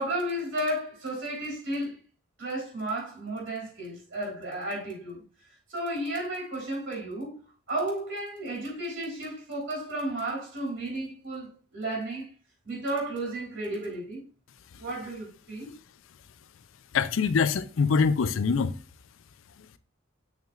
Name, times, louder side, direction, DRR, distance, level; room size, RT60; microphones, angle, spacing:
voice 1, 0.0-2.0 2.4-5.2 5.7-7.3 7.7-12.3 12.6-14.2 14.8-15.7, right 1 dB, 60° right, 3.6 m, -33 dB
voice 2, 16.9-18.7, left 5 dB, 70° left, 0.4 m, -24 dB
6.7 x 6.2 x 2.4 m
head